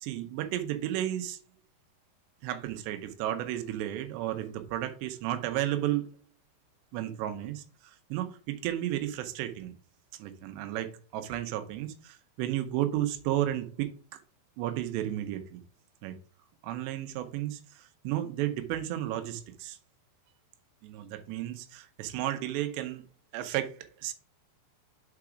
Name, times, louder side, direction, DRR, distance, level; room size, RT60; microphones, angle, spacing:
voice 1, 0.0-1.4 2.4-6.2 6.9-9.8 10.2-14.2 14.6-15.6 16.0-16.2 16.6-19.8 20.8-23.0 23.3-24.1, right 13 dB, 80° right, 2.9 m, -33 dB
5.9 x 4.7 x 4.9 m
omnidirectional pair, 5.0 m